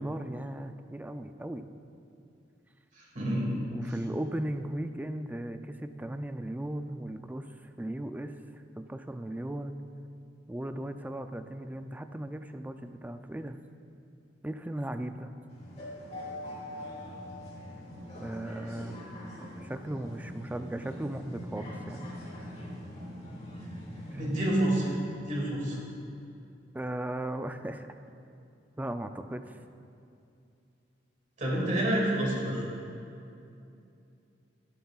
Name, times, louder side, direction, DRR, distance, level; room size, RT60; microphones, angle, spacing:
voice 1, 0.0-1.7 3.7-7.5 7.8-8.4 8.8-9.8 10.5-13.6 14.4-15.3 18.2-19.0 19.6-22.1 24.1-24.4 26.7-27.9 28.8-29.4, right 1 dB, 10° right, 9 dB, 0.3 m, -37 dB
voice 2, 3.0-3.5 3.8-3.9 24.2-24.9 25.3-25.8 31.4-32.6, right 1 dB, 45° right, -3 dB, 2.2 m, -28 dB
sound 1, 15.5-24.5, equal, 40° left, 2.6 m, -42 dB
13.0 x 11.0 x 2.4 m, 2.6 s
head